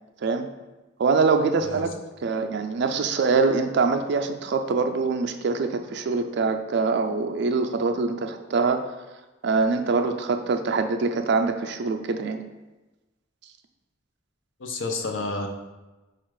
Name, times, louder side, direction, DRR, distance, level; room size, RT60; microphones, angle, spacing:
voice 1, 1.0-1.9 2.2-8.8 9.4-12.4, right 4 dB, 60° right, 6 dB, 0.4 m, -24 dB
voice 2, 14.6-15.5, left 3 dB, 75° left, 4 dB, 0.6 m, -30 dB
4.3 x 2.4 x 4.6 m, 1.1 s
head